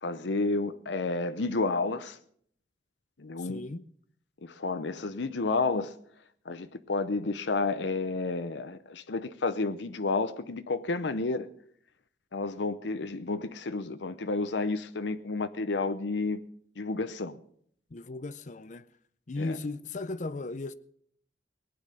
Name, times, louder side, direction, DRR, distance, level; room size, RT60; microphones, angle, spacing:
voice 1, 0.0-2.2 3.2-3.6 4.4-6.0 6.5-11.5 12.3-16.4 16.8-17.4 19.4-19.6, left 3 dB, 75° left, 0.7 m, -31 dB
voice 2, 3.4-3.9 17.9-18.9 19.3-20.7, left 2 dB, 40° left, 0.5 m, -36 dB
19.0 x 9.6 x 6.7 m
head